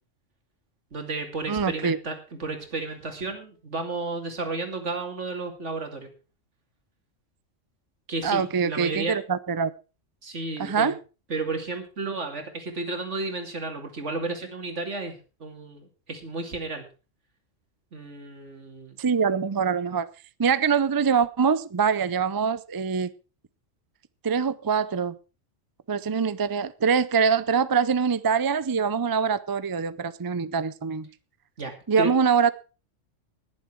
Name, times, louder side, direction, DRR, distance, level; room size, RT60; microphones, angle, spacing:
voice 1, 0.9-2.1 2.4-6.1 8.1-9.2 10.2-10.9 11.3-16.8 17.9-19.0 31.6-32.1, right 3 dB, 70° right, 2.8 m, -32 dB
voice 2, 1.5-2.0 8.2-9.7 10.6-10.9 19.0-20.1 20.4-23.1 24.2-25.2 25.9-31.1 31.9-32.5, right 6 dB, 35° right, 0.3 m, -24 dB
20.0 x 7.4 x 4.6 m
omnidirectional pair, 1.3 m